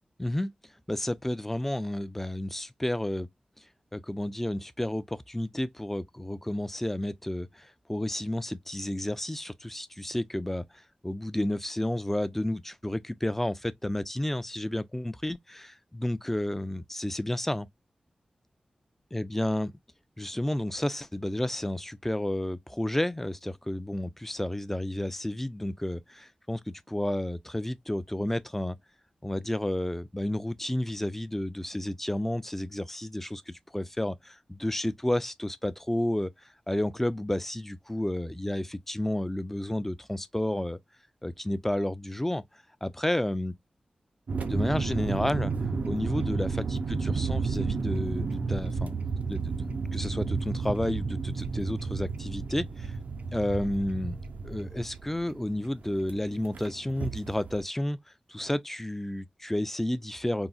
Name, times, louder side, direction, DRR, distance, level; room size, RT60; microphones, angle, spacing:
voice 1, 0.2-0.5 0.9-3.3 3.9-17.7 19.1-19.7 20.2-28.8 29.2-36.3 36.7-40.8 41.2-43.5 44.4-45.5 45.8-48.9 49.3-53.0 53.3-54.2 54.4-58.0 58.3-60.5, left 1 dB, 10° left, 0.4 m, -31 dB
sound 1, 44.3-57.6, right 4 dB, 75° right, 0.4 m, -32 dB
3.8 x 2.0 x 2.3 m
cardioid pair, 40°, 3 cm